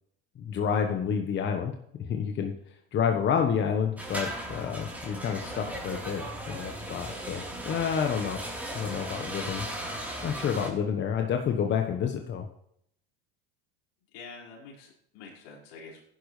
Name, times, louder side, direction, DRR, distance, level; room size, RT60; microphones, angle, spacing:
voice 1, 0.4-2.5 2.9-8.4 8.7-9.7 10.2-12.4, left 7 dB, 40° left, 4 dB, 1.3 m, -29 dB
sound 1, 4.0-10.7, right 1 dB, 5° right, 4.0 m, -37 dB
voice 2, 14.1-16.0, left 4 dB, 70° left, -3 dB, 5.2 m, -46 dB
15.5 x 11.0 x 3.4 m, 0.73 s
hypercardioid pair, 95°, 30 cm